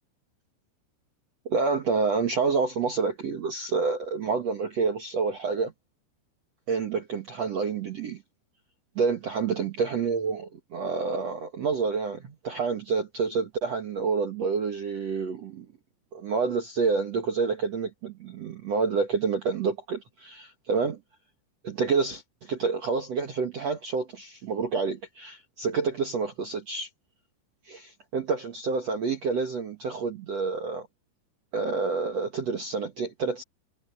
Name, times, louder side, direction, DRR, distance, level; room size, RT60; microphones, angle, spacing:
voice 1, 1.4-5.7 6.7-8.2 8.9-15.6 16.1-21.0 21.6-26.9 27.7-30.9 31.5-33.4, right 5 dB, 65° right, 1.6 m, -28 dB
omnidirectional pair, 5.4 m